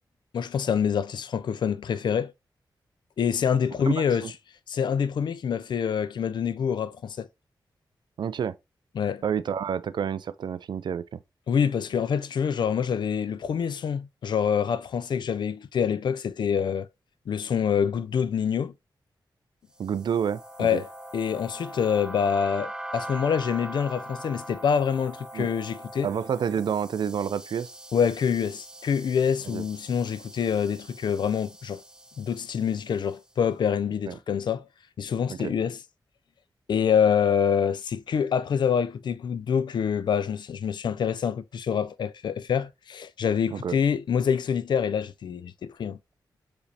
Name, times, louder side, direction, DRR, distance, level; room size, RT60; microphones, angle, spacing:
voice 1, 0.3-2.3 3.2-4.3 4.7-7.3 9.0-9.2 11.5-16.9 17.3-18.7 20.6-26.1 27.9-31.8 32.2-34.7 35.0-35.8 36.7-46.0, left 7 dB, 70° left, 0.4 m, -26 dB
voice 2, 8.2-8.5 9.2-11.2 19.8-20.8 25.3-25.5 26.0-27.7 29.5-29.6 34.1-34.2 35.3-35.5 43.5-43.8, right 8 dB, 70° right, 0.3 m, -29 dB
sound 1, 19.8-33.1, right 1 dB, 10° right, 0.6 m, -42 dB
4.9 x 3.3 x 2.7 m
wide cardioid pair, 110°, 8 cm